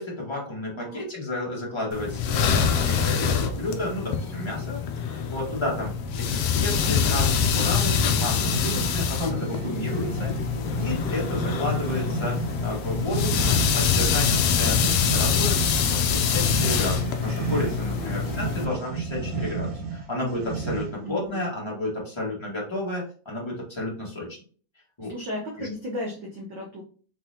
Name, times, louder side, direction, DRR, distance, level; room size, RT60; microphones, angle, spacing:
voice 1, 0.0-4.8 5.0-10.3 10.8-24.4 25.0-25.1 25.6-25.7, left 1 dB, 15° left, -4 dB, 0.9 m, -32 dB
sound 1, 1.9-18.7, left 6 dB, 80° left, 1.3 m, -25 dB
voice 2, 6.7-7.2 17.7-18.5 21.0-21.4 25.0-26.8, left 1 dB, 75° right, -2 dB, 1.0 m, -36 dB
sound 2, 7.4-21.1, right 4 dB, 55° right, 1.5 m, -33 dB
4.5 x 4.0 x 2.8 m, 0.42 s
omnidirectional pair, 3.4 m